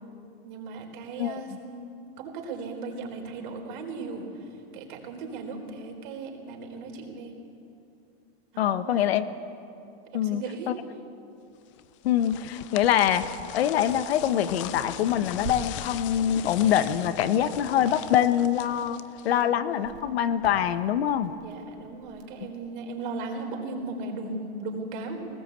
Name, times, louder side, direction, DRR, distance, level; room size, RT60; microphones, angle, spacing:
voice 1, 0.4-1.9 2.2-4.3 4.7-7.4 8.5-9.3 10.1-10.7 19.3-19.9 21.4-25.2, right 3 dB, 50° right, 2 dB, 4.1 m, -37 dB
voice 2, 8.6-9.3 10.1-10.7 12.0-13.2 13.5-19.0 19.2-21.3 22.4-22.5, left 10 dB, 70° left, 11 dB, 1.2 m, -24 dB
sound 1, 11.8-19.6, left 13 dB, 30° left, 0.5 m, -39 dB
sound 2, 14.0-14.3 15.3-15.5 16.6-17.0 19.7-22.5, right 9 dB, 35° right, 2.3 m, -45 dB
20.5 x 19.5 x 8.2 m, 2.7 s
supercardioid pair, 170°, 32 cm